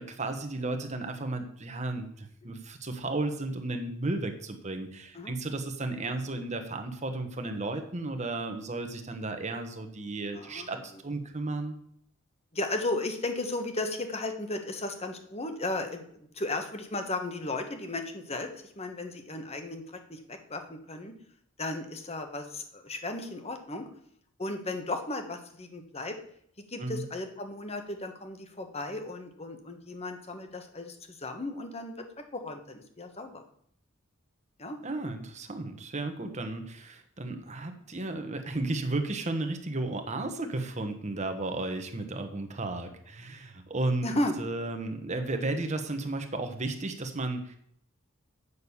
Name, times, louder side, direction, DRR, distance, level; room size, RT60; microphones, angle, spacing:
voice 1, 0.0-11.8 26.8-27.0 34.8-47.6, right 2 dB, 35° right, 6 dB, 1.3 m, -34 dB
voice 2, 10.3-10.7 12.5-21.1 21.6-23.9 24.4-26.2 26.7-32.0 32.3-33.4 34.6-34.8 44.0-44.3, left 2 dB, 30° left, 6 dB, 1.3 m, -35 dB
8.2 x 6.4 x 7.1 m, 0.67 s
head